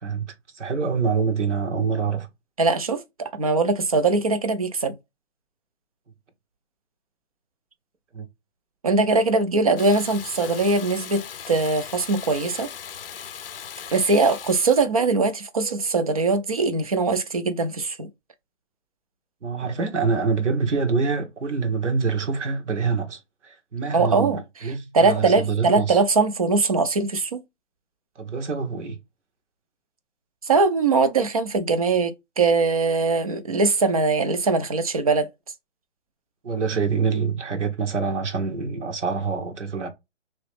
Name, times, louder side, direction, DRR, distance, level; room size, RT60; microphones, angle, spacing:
voice 1, 0.0-2.3 8.1-8.3 19.4-26.0 28.2-29.0 36.4-39.9, right 5 dB, 90° right, 1.3 m, -26 dB
voice 2, 2.6-5.0 8.8-12.7 13.9-18.1 23.9-27.4 30.4-35.3, right 3 dB, 35° right, 0.4 m, -21 dB
Water tap faucet / Bathtub (filling or washing), 9.8-14.9, left 8 dB, 55° left, 0.5 m, -38 dB
3.1 x 2.8 x 3.1 m
hypercardioid pair, 160°, 35 cm